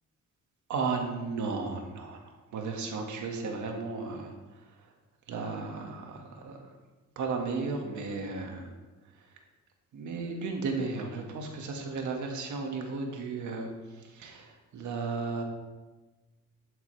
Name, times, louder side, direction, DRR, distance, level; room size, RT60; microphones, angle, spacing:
voice 1, 0.7-4.9 5.3-6.7 7.2-8.7 9.1-9.3 9.9-15.4, right 4 dB, 75° right, 2 dB, 2.0 m, -35 dB
11.5 x 10.5 x 3.4 m, 1.2 s
cardioid pair, 90°, 30 cm